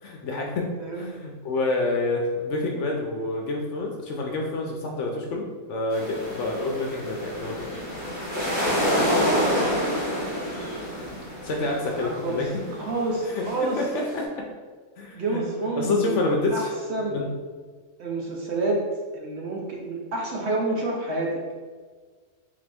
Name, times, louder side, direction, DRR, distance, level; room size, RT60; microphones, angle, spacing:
voice 1, 0.0-0.7 0.9-5.4 5.7-7.7 11.4-12.5 13.3-13.9 14.1-14.3 15.0-15.4 15.8-16.6 17.1-17.3, left 2 dB, 65° left, 0 dB, 0.8 m, -28 dB
sound 1, 5.9-14.2, equal, 15° left, 1.0 m, -28 dB
voice 2, 8.8-10.0 11.9-13.8 15.1-16.2 16.5-17.2 18.0-18.8 19.1-21.4, right 2 dB, 60° right, -2 dB, 0.8 m, -29 dB
3.8 x 3.5 x 3.4 m, 1.5 s
omnidirectional pair, 1.5 m